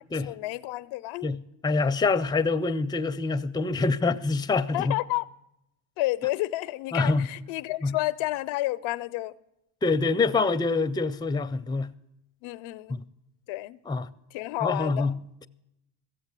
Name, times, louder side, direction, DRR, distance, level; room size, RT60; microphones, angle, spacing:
voice 1, 0.3-1.3 4.7-5.3 6.0-9.3 12.4-13.0 13.5-13.8 14.3-15.1, left 18 dB, 85° left, 0.6 m, -30 dB
voice 2, 1.2-4.9 6.9-7.3 7.8-8.0 9.8-11.9 12.9-13.0 13.9-14.1 14.6-15.5, left 3 dB, 10° left, 0.4 m, -26 dB
15.0 x 7.5 x 8.1 m
cardioid pair, 80°, 47 cm